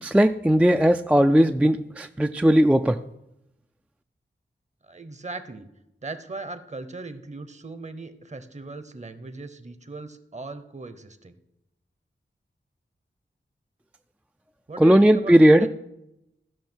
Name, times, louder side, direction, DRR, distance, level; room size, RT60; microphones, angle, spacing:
voice 1, 0.0-3.0 14.8-15.7, right 1 dB, 5° right, 7 dB, 0.3 m, -17 dB
voice 2, 4.8-5.7 6.0-11.4 14.7-15.7, right 3 dB, 35° right, 11 dB, 0.9 m, -38 dB
15.0 x 5.6 x 4.5 m, 0.87 s
wide cardioid pair, 75°, 20 cm